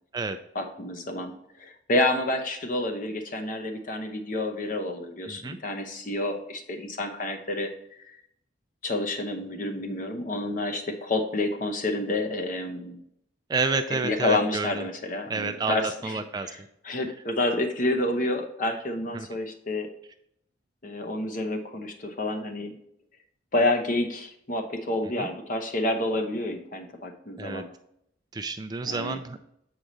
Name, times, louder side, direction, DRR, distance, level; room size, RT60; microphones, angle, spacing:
voice 1, 0.5-8.1 8.8-13.0 14.0-16.6 16.8-19.9 20.8-22.8 23.5-27.7 28.9-29.2, left 2 dB, 45° left, 5 dB, 0.8 m, -29 dB
voice 2, 5.2-5.6 13.5-14.8 15.3-16.5 19.1-19.3 25.2-25.3 27.4-27.6 28.3-29.4, right 4 dB, 20° right, 8 dB, 0.3 m, -30 dB
7.3 x 4.8 x 3.9 m, 0.74 s
head